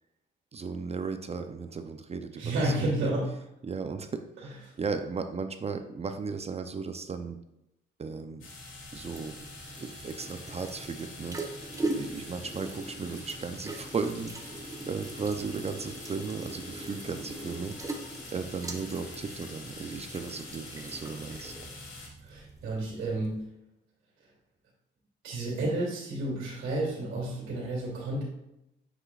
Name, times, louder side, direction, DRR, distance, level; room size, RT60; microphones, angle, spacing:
voice 1, 0.5-7.4 8.0-8.5 8.9-9.4 9.8-17.8 18.3-21.5, right 5 dB, 30° right, 8 dB, 0.6 m, -36 dB
voice 2, 2.4-3.2 22.2-23.4 25.2-28.2, right 1 dB, 75° right, -4 dB, 2.5 m, -31 dB
sound 1, 8.4-22.1, left 3 dB, 80° left, 2.3 m, -46 dB
sound 2, 8.4-23.5, right 2 dB, 15° right, 1.0 m, -41 dB
7.3 x 6.7 x 2.4 m, 0.86 s
cardioid pair, 90°, 20 cm